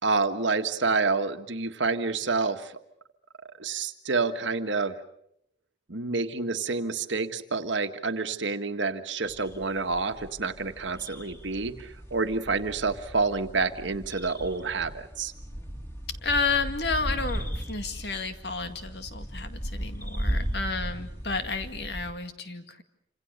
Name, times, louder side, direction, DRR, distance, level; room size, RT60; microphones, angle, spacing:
voice 1, 0.0-2.7 3.6-4.9 5.9-15.3, right 4 dB, 85° right, 8 dB, 1.6 m, -28 dB
sound 1, 9.2-22.1, equal, 15° left, 3.1 m, -36 dB
voice 2, 16.2-22.8, left 4 dB, 65° left, 8 dB, 2.1 m, -31 dB
28.0 x 26.5 x 6.7 m, 0.74 s
head